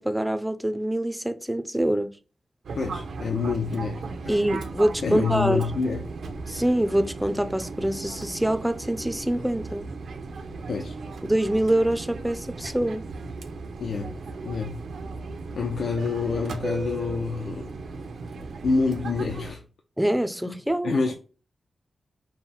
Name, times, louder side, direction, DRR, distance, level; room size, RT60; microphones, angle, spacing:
voice 1, 0.0-2.1 4.3-5.6 6.5-9.8 11.2-13.1 20.0-20.9, right 1 dB, 5° right, 0.4 m, -25 dB
Fixed-wing aircraft airplane, 2.6-19.5, right 3 dB, 80° right, 0.7 m, -36 dB
voice 2, 2.8-4.4 5.0-6.0 10.7-11.0 13.8-14.2 14.4-14.8 15.5-17.7 18.6-19.6 20.5-20.6 20.8-21.1, left 4 dB, 80° left, 0.6 m, -27 dB
5.5 x 2.1 x 4.2 m
wide cardioid pair, 140°, 0 cm